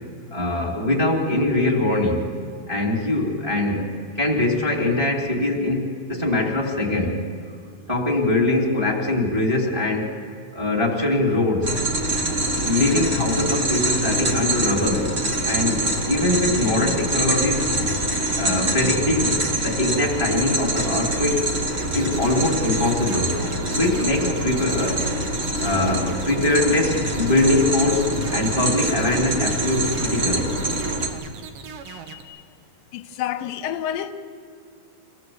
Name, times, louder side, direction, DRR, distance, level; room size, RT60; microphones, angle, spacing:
voice 1, 0.3-2.4 2.7-7.2 7.9-10.1 10.5-11.8 12.6-15.1 15.4-17.6 18.3-21.5 21.9-23.4 23.7-25.1 25.6-30.5, left 2 dB, 10° right, 2.3 m, -22 dB
sound 1, 11.6-31.1, right 1 dB, 40° right, 1.0 m, -25 dB
sound 2, 21.8-32.2, right 7 dB, 75° right, 2.9 m, -39 dB
voice 2, 31.8-32.5 32.9-34.1, left 11 dB, 85° left, 2.5 m, -30 dB
25.5 x 16.5 x 7.9 m
omnidirectional pair, 4.0 m